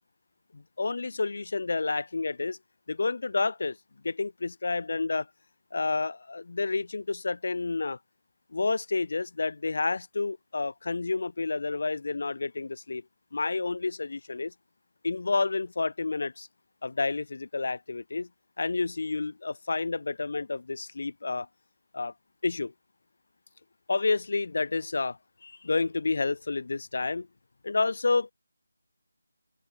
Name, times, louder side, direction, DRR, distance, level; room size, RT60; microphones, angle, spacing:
voice 1, 0.5-2.6 2.9-3.8 4.0-5.3 5.7-8.0 8.5-13.0 13.3-14.5 15.0-16.5 16.8-18.3 18.6-21.5 21.9-22.1 22.4-22.7 23.9-27.3 27.6-28.3, left 3 dB, 55° left, 1.8 m, -30 dB
open air
figure-of-eight pair, 160°, 0 cm